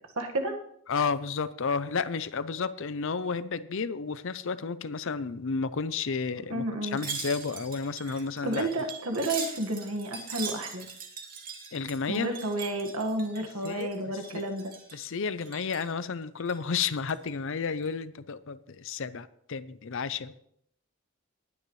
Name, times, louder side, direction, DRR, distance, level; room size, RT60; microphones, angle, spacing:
voice 1, 0.1-0.6 6.5-7.0 8.4-10.9 12.1-14.7, right 1 dB, 75° right, 3 dB, 1.7 m, -31 dB
voice 2, 0.9-8.7 11.7-12.3 13.4-14.5 14.9-20.4, left 5 dB, 60° left, 15 dB, 0.6 m, -32 dB
Wind chime, 6.9-14.0 14.2-15.0 15.4-15.9 16.4-17.3 17.7-17.9, right 6 dB, 40° right, 1.9 m, -41 dB
19.5 x 9.5 x 3.2 m, 0.73 s
head